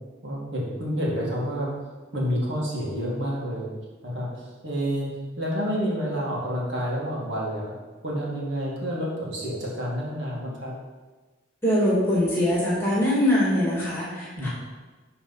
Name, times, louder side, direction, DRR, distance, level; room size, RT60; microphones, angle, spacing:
voice 1, 0.2-1.7 2.1-3.7 4.0-5.1 5.4-7.7 8.0-10.7 14.4-14.5, equal, 75° right, -4 dB, 2.1 m, -29 dB
voice 2, 11.6-14.5, left 1 dB, 10° left, -6 dB, 2.3 m, -22 dB
11.0 x 3.9 x 4.1 m, 1.3 s
head